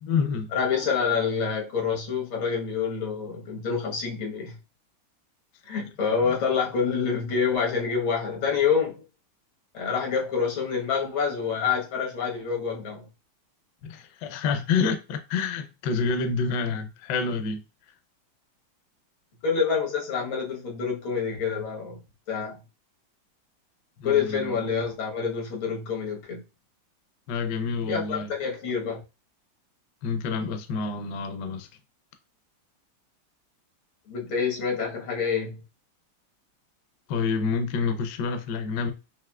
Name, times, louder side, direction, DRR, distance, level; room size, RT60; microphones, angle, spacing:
voice 1, 0.0-0.5 13.8-17.6 24.0-24.6 27.3-28.3 30.0-31.7 37.1-38.9, left 5 dB, 70° left, 1.1 m, -28 dB
voice 2, 0.5-4.6 5.7-9.0 9.7-13.1 19.4-22.0 22.3-22.6 24.0-26.4 27.9-29.0 34.1-35.6, left 6 dB, 90° left, 2.1 m, -27 dB
5.7 x 2.7 x 2.3 m
omnidirectional pair, 2.1 m